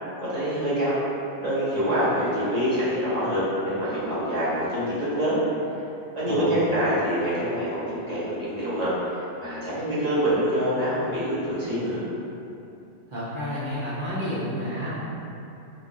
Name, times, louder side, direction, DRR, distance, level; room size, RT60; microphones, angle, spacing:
voice 1, 0.3-1.0 1.4-5.4 6.2-12.0, equal, 35° right, -11 dB, 0.7 m, -25 dB
voice 2, 6.3-6.6 13.1-15.1, equal, 70° right, -10 dB, 0.4 m, -30 dB
3.0 x 2.3 x 2.4 m, 2.8 s
omnidirectional pair, 1.5 m